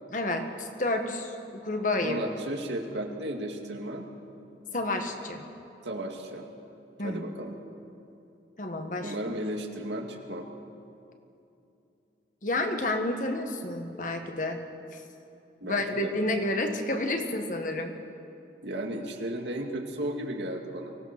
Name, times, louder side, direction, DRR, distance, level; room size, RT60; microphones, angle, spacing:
voice 1, 0.1-2.2 4.7-5.5 7.0-7.2 8.6-9.1 12.4-14.7 14.9-15.0 15.6-17.9, left 2 dB, 45° left, 5 dB, 1.7 m, -30 dB
voice 2, 2.0-4.1 5.8-6.4 7.0-7.5 9.0-10.5 15.6-16.1 18.6-20.9, right 1 dB, 90° right, 2 dB, 2.3 m, -34 dB
24.5 x 17.5 x 6.1 m, 2.7 s
head